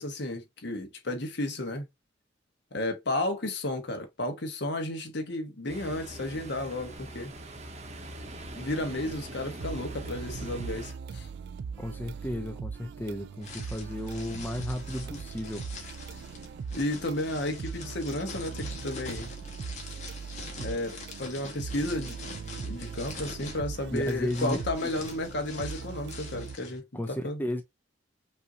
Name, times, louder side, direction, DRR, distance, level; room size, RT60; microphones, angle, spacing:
voice 1, 0.0-1.9 2.7-7.3 8.5-11.3 16.7-19.3 20.6-22.2 22.6-27.4, left 1 dB, 65° left, 1.2 m, -33 dB
Ocean, 5.7-10.9, right 1 dB, 35° right, 0.9 m, -42 dB
sound 1, 9.6-26.6, right 5 dB, 65° right, 0.3 m, -40 dB
voice 2, 11.8-15.6 23.9-24.6 24.8-24.9 26.9-27.6, left 1 dB, 10° left, 0.5 m, -33 dB
sound 2, 13.4-26.8, left 3 dB, 40° left, 1.4 m, -45 dB
5.5 x 2.7 x 2.8 m
head